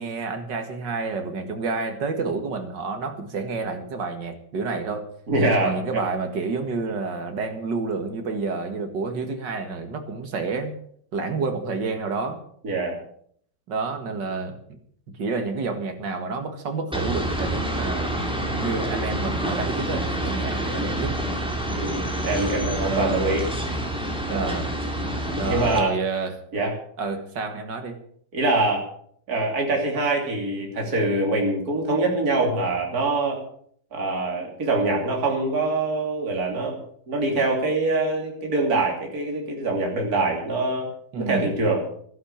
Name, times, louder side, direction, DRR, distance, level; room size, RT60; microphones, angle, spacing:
voice 1, 0.0-5.1 5.6-10.8 11.1-12.4 13.7-14.6 15.2-18.1 18.6-21.1 22.8-23.2 24.3-24.7 25.4-26.4 27.0-28.0 41.1-41.5, right 4 dB, 75° right, 6 dB, 2.5 m, -29 dB
voice 2, 5.3-6.0 12.6-13.0 21.8-23.4 24.3-24.5 25.5-25.9 26.5-26.7 28.3-28.9 29.3-33.4 33.9-36.8 37.1-40.9 41.2-41.8, right 2 dB, 55° right, 0 dB, 3.5 m, -24 dB
sound 1, 16.9-25.8, right 1 dB, 5° right, 2.7 m, -27 dB
13.5 x 11.0 x 7.2 m, 0.62 s
omnidirectional pair, 2.0 m